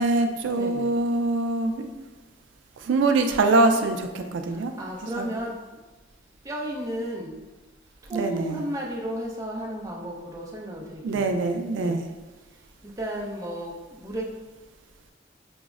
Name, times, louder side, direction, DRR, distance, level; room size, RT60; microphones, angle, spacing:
voice 1, 0.0-1.9 2.8-4.7 5.2-5.3 8.1-8.7 11.0-12.1, right 2 dB, 75° right, 6 dB, 0.3 m, -24 dB
voice 2, 0.5-1.0 4.8-5.5 6.4-7.4 8.1-11.3 11.7-12.0 12.8-14.3, equal, 20° right, -2 dB, 0.5 m, -33 dB
6.0 x 2.0 x 2.4 m, 1.2 s
head